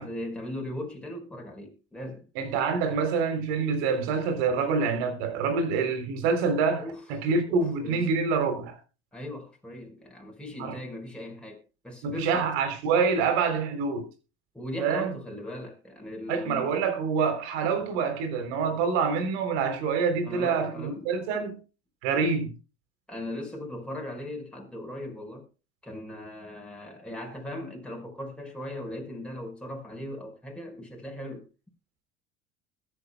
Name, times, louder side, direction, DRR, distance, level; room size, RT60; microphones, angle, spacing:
voice 1, 0.0-2.3 6.8-7.0 7.5-8.1 9.1-12.5 14.5-16.7 20.2-21.1 23.1-25.5 25.8-31.5, left 1 dB, 5° left, 5.2 m, -38 dB
voice 2, 2.4-8.8 10.6-10.8 12.0-14.1 14.8-15.1 16.3-21.6 22.0-22.5, right 5 dB, 60° right, 3.7 m, -26 dB
21.5 x 10.0 x 2.3 m
figure-of-eight pair, 65°, 34 cm